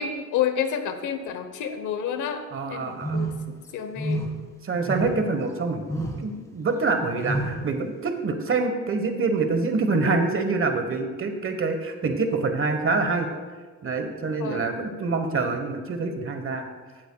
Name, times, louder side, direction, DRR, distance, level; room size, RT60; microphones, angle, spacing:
voice 1, 0.0-2.4 2.7-4.3 14.4-14.9, left 8 dB, 80° left, 8 dB, 1.0 m, -30 dB
voice 2, 2.5-3.2 4.6-13.3 13.8-16.7, right 3 dB, 45° right, 7 dB, 1.2 m, -26 dB
sound 1, 3.0-3.5 4.0-4.4 4.8-5.3 5.9-6.3 7.2-7.7, right 1 dB, 10° left, 1.6 m, -29 dB
16.5 x 7.8 x 2.3 m, 1.4 s
cardioid pair, 90°, 30 cm